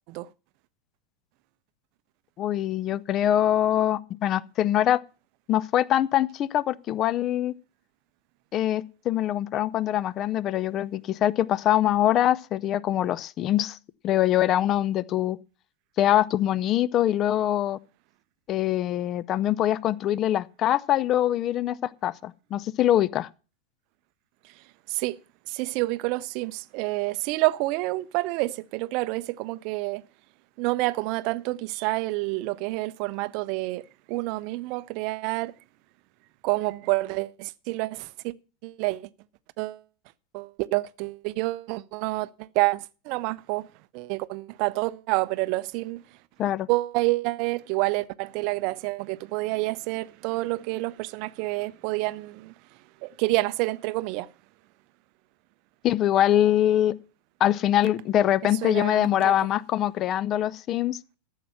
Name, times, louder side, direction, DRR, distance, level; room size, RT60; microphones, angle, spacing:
voice 1, 2.4-5.0 5.5-7.5 8.5-13.8 14.0-15.4 16.0-17.8 18.5-23.3 46.4-46.7 55.8-56.9 57.4-61.0, left 12 dB, 30° left, 0.5 m, -23 dB
voice 2, 25.5-30.0 30.6-35.5 36.4-38.3 38.6-39.1 39.6-39.8 40.3-43.7 43.9-46.0 46.7-52.5 53.0-54.3 58.6-59.3, right 21 dB, 45° right, 0.5 m, -28 dB
14.0 x 7.4 x 5.7 m
figure-of-eight pair, 90°, 0 cm